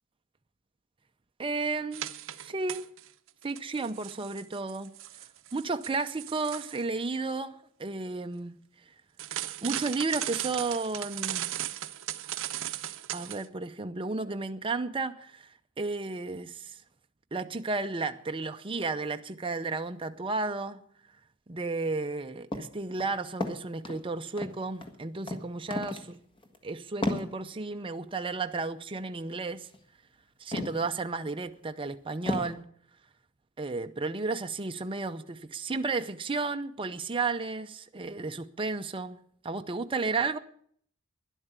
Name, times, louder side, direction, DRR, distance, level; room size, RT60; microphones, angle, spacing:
voice 1, 1.4-2.1 2.4-2.9 3.4-4.9 5.5-8.6 9.6-11.5 13.1-16.8 17.3-20.8 21.5-26.2 26.6-29.7 30.4-32.7 33.6-39.2 39.4-40.4, right 3 dB, 25° right, 0.6 m, -33 dB
sound 1, 1.9-3.1 3.4-6.8 9.2-13.5, right 12 dB, 65° right, 0.7 m, -37 dB
sound 2, 22.5-22.7 23.0-24.0 24.4-25.0 25.3-25.4 25.7-26.1 26.4-26.6 27.0-27.3 29.6-29.8 30.5-30.9 31.4-31.5 32.3-32.5, left 1 dB, 25° left, 1.6 m, -33 dB
12.5 x 11.0 x 8.2 m
head